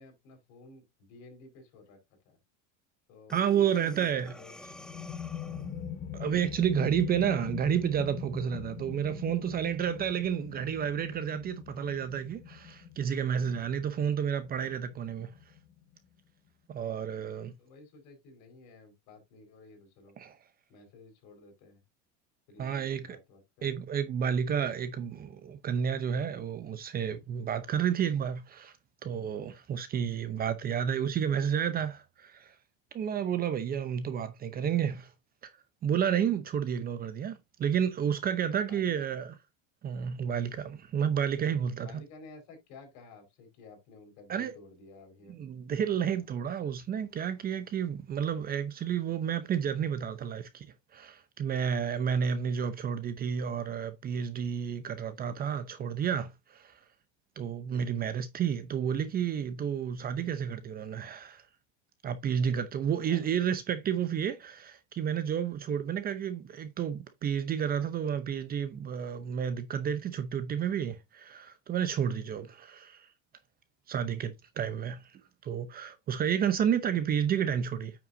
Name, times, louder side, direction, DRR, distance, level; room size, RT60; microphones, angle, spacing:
voice 1, 0.0-2.0 2.2-2.4 3.1-4.6 5.6-6.0 17.6-20.2 20.7-21.8 22.5-23.9 30.3-30.6 38.7-39.1 41.8-45.3 46.2-46.3 63.1-63.3, left 3 dB, 60° left, 4.5 m, -53 dB
Breathing, 3.3-5.9, left 1 dB, ahead, 0.4 m, -49 dB
voice 2, 3.3-4.3 6.1-15.3 16.7-17.5 20.2-20.4 22.6-23.2 23.6-28.7 29.0-32.5 32.9-35.1 35.4-35.5 35.8-39.3 39.8-42.0 44.3-44.5 45.3-50.7 50.9-56.8 57.4-61.4 62.0-73.1 73.9-77.9, right 8 dB, 25° right, 0.8 m, -31 dB
sound 1, 4.5-15.9, left 8 dB, 30° left, 1.2 m, -42 dB
9.2 x 5.9 x 2.7 m
cardioid pair, 150°, 34 cm